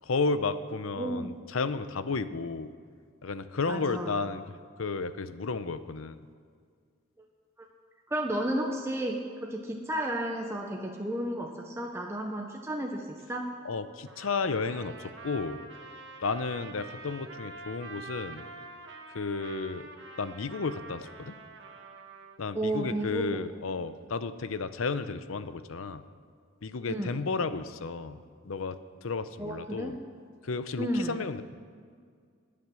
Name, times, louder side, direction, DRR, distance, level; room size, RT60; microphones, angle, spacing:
voice 1, 0.0-2.7 3.2-4.4 4.8-6.2 13.6-15.6 16.2-18.5 19.1-19.9 20.2-21.3 22.4-26.0 26.6-28.2 28.4-30.0 30.4-31.4, left 4 dB, 85° left, 13 dB, 0.7 m, -32 dB
voice 2, 1.0-1.3 3.7-4.2 7.6-7.7 8.1-13.5 22.5-23.5 26.9-27.1 29.4-30.0 30.8-31.2, right 1 dB, 15° right, 1 dB, 0.7 m, -32 dB
Trumpet, 14.1-22.4, right 3 dB, 60° right, 1.6 m, -46 dB
20.5 x 7.7 x 6.3 m, 2.1 s
head